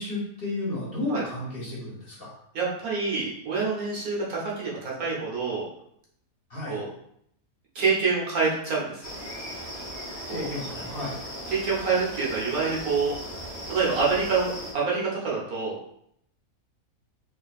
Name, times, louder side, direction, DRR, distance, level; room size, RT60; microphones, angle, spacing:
voice 1, 0.0-2.3 6.5-6.8 10.3-11.1, left 2 dB, 45° left, -5 dB, 1.1 m, -32 dB
voice 2, 2.5-5.7 6.7-6.9 7.7-9.0 10.3-10.5 11.5-13.1 13.7-15.8, right 4 dB, 75° right, -5 dB, 1.5 m, -26 dB
sound 1, 9.0-14.7, equal, 25° left, 0.7 m, -37 dB
4.5 x 2.6 x 2.4 m, 0.71 s
omnidirectional pair, 1.6 m